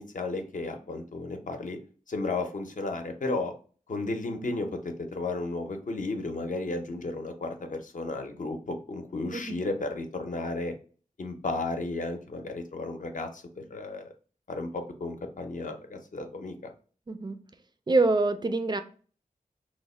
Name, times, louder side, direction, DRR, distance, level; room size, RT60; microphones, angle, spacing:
voice 1, 0.0-1.8 2.1-3.5 3.9-10.7 11.2-14.1 14.5-16.5, left 2 dB, 60° left, 5 dB, 0.6 m, -33 dB
voice 2, 17.1-17.4 17.9-18.8, right 3 dB, 30° right, 9 dB, 0.4 m, -25 dB
3.0 x 2.1 x 4.1 m, 0.40 s
wide cardioid pair, 75°, 15 cm